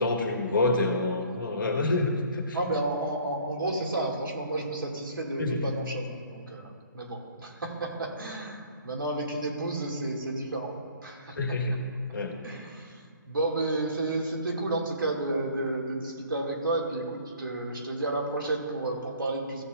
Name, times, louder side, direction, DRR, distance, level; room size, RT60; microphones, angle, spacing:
voice 1, 0.0-2.6 5.4-5.8 11.4-11.8 12.1-12.4, left 2 dB, 75° left, 2 dB, 1.8 m, -27 dB
voice 2, 2.5-10.7 11.0-11.6 12.4-19.6, right 2 dB, 80° right, -1 dB, 2.3 m, -31 dB
16.0 x 8.4 x 2.5 m, 2.1 s
figure-of-eight pair, 140°, 11 cm